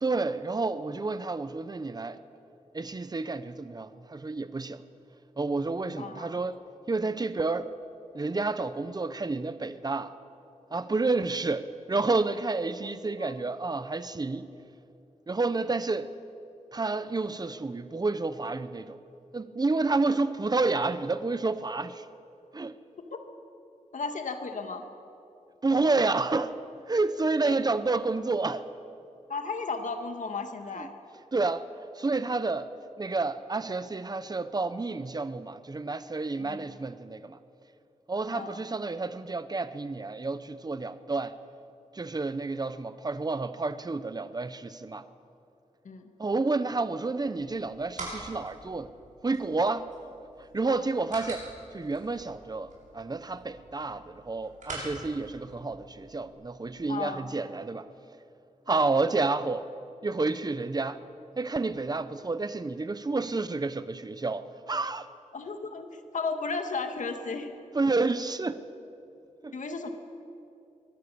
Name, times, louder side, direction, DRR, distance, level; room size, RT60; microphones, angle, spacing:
voice 1, 0.0-2.2 2.7-4.8 5.4-6.6 6.9-7.7 8.1-10.1 10.7-14.5 15.3-16.1 16.7-19.0 19.3-22.0 22.5-22.8 25.6-26.5 26.9-28.6 30.8-30.9 31.3-32.7 33.0-37.4 38.1-41.4 41.9-45.0 46.2-48.9 49.2-49.9 50.5-51.4 51.7-57.9 58.7-59.7 60.0-61.0 61.4-65.1 67.7-68.6 69.4-69.5, right 3 dB, 30° right, 0.9 m, -30 dB
voice 2, 6.0-6.4 13.2-13.3 23.1-23.2 23.9-24.8 27.4-27.6 29.3-30.9 36.4-36.7 38.3-38.6 45.8-46.1 50.6-50.8 56.9-57.3 58.7-58.8 65.3-67.6 69.5-69.9, left 4 dB, 75° left, 1.8 m, -35 dB
sound 1, 47.4-56.3, right 2 dB, 75° right, 6.7 m, -45 dB
22.5 x 17.0 x 7.0 m
wide cardioid pair, 85°, 13 cm